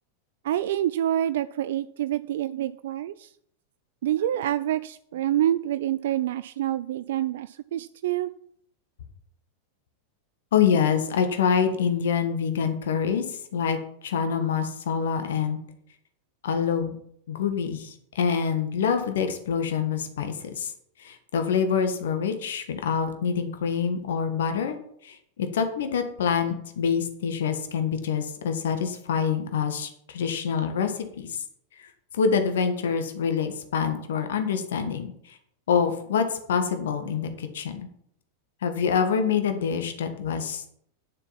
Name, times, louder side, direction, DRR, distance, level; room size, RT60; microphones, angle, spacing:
voice 1, 0.4-3.3 4.0-8.3, right 12 dB, 55° right, 14 dB, 0.3 m, -27 dB
voice 2, 10.5-15.6 16.4-17.0 17.3-20.7 21.0-24.8 25.0-31.3 31.8-31.9 32.1-35.4 35.7-37.9 38.6-40.7, left 6 dB, 60° left, 7 dB, 1.6 m, -26 dB
9.9 x 7.0 x 5.8 m, 0.67 s
figure-of-eight pair, 90°, 0 cm